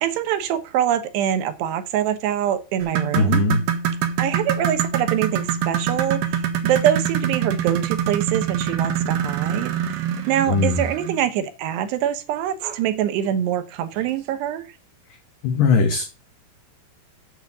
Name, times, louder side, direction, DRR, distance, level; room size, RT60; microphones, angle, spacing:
voice 1, 0.0-3.4 4.2-14.7, right 10 dB, 90° right, 10 dB, 3.2 m, -24 dB
sound 1, 2.8-11.2 12.6-12.8 13.2-13.3 14.0-14.1, right 8 dB, 70° right, 3.1 m, -25 dB
voice 2, 3.1-3.6 10.5-10.8 15.4-16.0, left 4 dB, 65° left, 4 dB, 2.5 m, -19 dB
8.2 x 5.9 x 7.3 m, 0.31 s
omnidirectional pair, 4.8 m